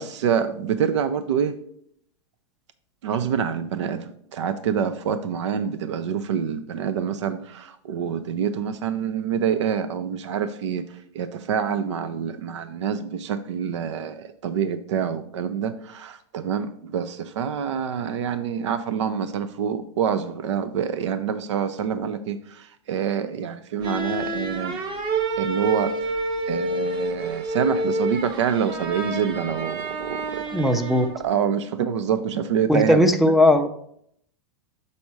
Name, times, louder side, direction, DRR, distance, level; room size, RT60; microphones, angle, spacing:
voice 1, 0.0-1.6 3.0-10.9 11.1-24.8 25.4-26.0 26.5-30.5 31.2-33.1, right 7 dB, 85° right, 12 dB, 0.6 m, -26 dB
sound 1, 23.8-31.3, right 2 dB, 30° right, 0.9 m, -29 dB
voice 2, 30.5-31.1 32.7-33.7, left 1 dB, ahead, 7 dB, 0.4 m, -18 dB
6.5 x 4.2 x 4.7 m, 0.68 s
supercardioid pair, 140°, 15 cm